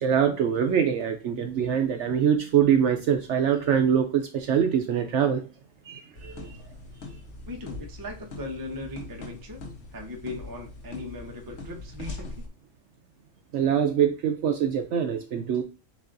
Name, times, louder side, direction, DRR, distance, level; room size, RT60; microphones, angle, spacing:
voice 1, 0.0-5.4 5.9-6.6 13.5-15.6, right 8 dB, 70° right, 5 dB, 0.8 m, -24 dB
sound 1, 6.2-12.5, left 3 dB, 60° left, 1.2 m, -41 dB
voice 2, 7.5-9.6 9.9-12.5, left 2 dB, 20° right, 1 dB, 0.6 m, -38 dB
7.3 x 2.5 x 2.5 m, 0.35 s
omnidirectional pair, 1.4 m